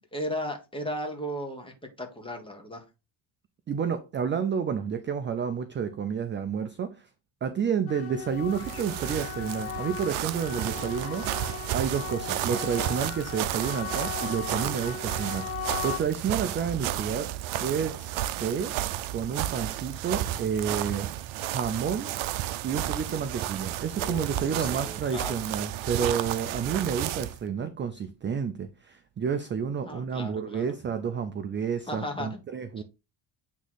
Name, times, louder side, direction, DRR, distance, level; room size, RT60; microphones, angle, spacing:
voice 1, 0.1-2.8 24.0-24.2 24.5-25.3 29.8-30.7 31.9-32.3 32.8-32.9, equal, 10° left, 1.2 m, -35 dB
voice 2, 3.7-7.1 7.4-17.3 17.6-18.1 18.4-18.7 19.1-21.1 21.4-22.1 22.6-32.8, right 7 dB, 25° right, 0.3 m, -30 dB
sound 1, 7.9-16.0, left 9 dB, 30° left, 0.6 m, -37 dB
sound 2, 8.3-27.4, right 13 dB, 80° right, 0.6 m, -32 dB
8.2 x 3.1 x 3.9 m
cardioid pair, 140°, 48 cm